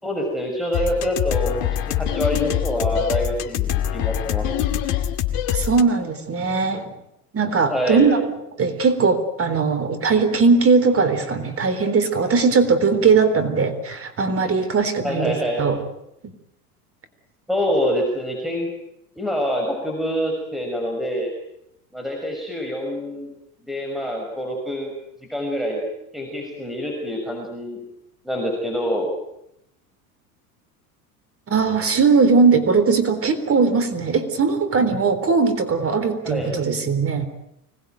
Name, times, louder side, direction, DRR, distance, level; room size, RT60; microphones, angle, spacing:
voice 1, 0.0-4.7 7.7-8.0 15.0-15.6 17.5-18.7 19.2-21.3 21.9-23.3 23.6-24.9 25.3-25.8 26.1-27.8 28.2-29.1 36.2-36.5, equal, ahead, 1 dB, 6.2 m, -26 dB
sound 1, 0.7-5.8, left 11 dB, 65° left, 2.5 m, -24 dB
voice 2, 5.5-6.9 7.3-15.8 31.5-37.3, right 4 dB, 30° right, 10 dB, 3.8 m, -19 dB
25.5 x 19.5 x 9.3 m, 0.82 s
hypercardioid pair, 90°, 45 cm